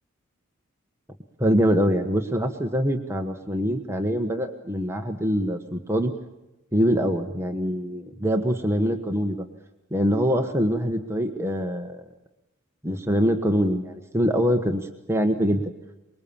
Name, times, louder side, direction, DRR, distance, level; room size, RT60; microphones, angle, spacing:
voice 1, 1.4-6.1 6.7-9.5 9.9-12.0 12.8-15.6, equal, 10° right, 4 dB, 1.3 m, -24 dB
24.0 x 22.0 x 7.1 m, 0.97 s
head